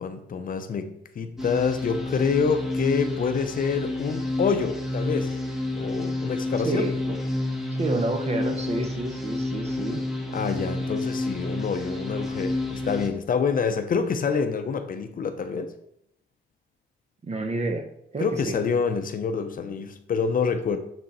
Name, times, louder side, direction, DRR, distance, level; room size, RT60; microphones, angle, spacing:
voice 1, 0.0-5.4 5.7-6.9 10.3-15.7 18.2-20.8, left 5 dB, 45° left, 0.6 m, -27 dB
sound 1, 1.4-13.1, left 2 dB, ahead, 1.3 m, -30 dB
voice 2, 6.6-7.2 7.8-10.0 17.2-17.9 18.1-18.6, right 2 dB, 35° right, 0.9 m, -29 dB
7.0 x 3.8 x 4.1 m
cardioid pair, 90°, 20 cm